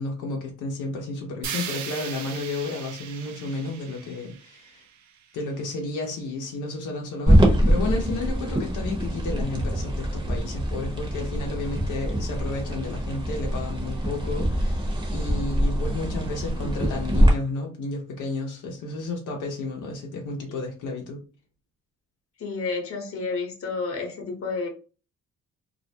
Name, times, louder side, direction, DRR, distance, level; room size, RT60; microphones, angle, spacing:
voice 1, 0.0-4.8 5.3-14.8 15.1-21.2, left 2 dB, 85° left, 0.7 m, -32 dB
sound 1, 1.4-5.5, right 8 dB, 70° right, 0.5 m, -38 dB
sound 2, 7.3-17.3, equal, 15° right, 0.8 m, -24 dB
voice 2, 22.4-24.7, left 4 dB, 50° left, 0.9 m, -30 dB
2.4 x 2.1 x 2.7 m
cardioid pair, 90°, 30 cm